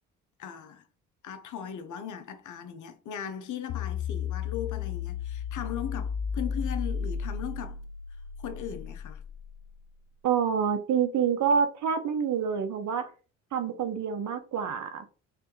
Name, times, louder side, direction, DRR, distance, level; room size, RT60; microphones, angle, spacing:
voice 1, 0.4-0.8 1.2-7.8 8.4-9.2, left 9 dB, 65° left, 0.8 m, -38 dB
sound 1, 3.7-9.9, left 7 dB, 50° left, 0.4 m, -34 dB
voice 2, 10.2-13.1 13.5-15.1, right 7 dB, 60° right, 0.8 m, -27 dB
3.4 x 3.3 x 3.1 m
supercardioid pair, 60°, 33 cm